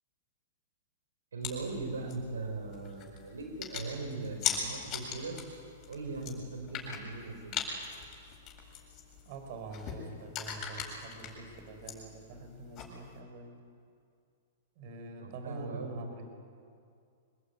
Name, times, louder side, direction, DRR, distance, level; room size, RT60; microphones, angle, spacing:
voice 1, 1.3-5.5 5.9-7.6 15.2-16.0, right 3 dB, 85° right, 4 dB, 4.6 m, -39 dB
sound 1, 1.4-13.2, left 7 dB, 35° left, 7.8 m, -41 dB
voice 2, 9.2-13.6 14.8-16.3, right 2 dB, 50° right, 5 dB, 5.8 m, -46 dB
26.0 x 21.5 x 9.8 m, 2.4 s
hypercardioid pair, 115°, 0 cm